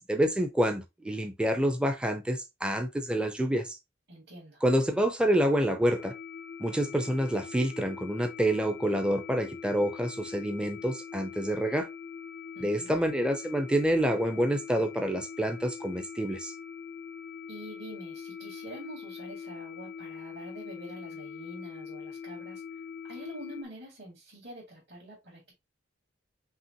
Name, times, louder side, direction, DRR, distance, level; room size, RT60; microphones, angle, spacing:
voice 1, 0.0-3.8 4.6-6.1 6.6-11.9 12.6-16.5, equal, 5° right, 0.5 m, -27 dB
voice 2, 4.1-4.6 12.5-13.0 17.5-25.5, right 1 dB, 65° right, 2.2 m, -46 dB
sound 1, 5.9-23.6, left 6 dB, 60° left, 0.5 m, -43 dB
5.5 x 2.9 x 2.9 m
head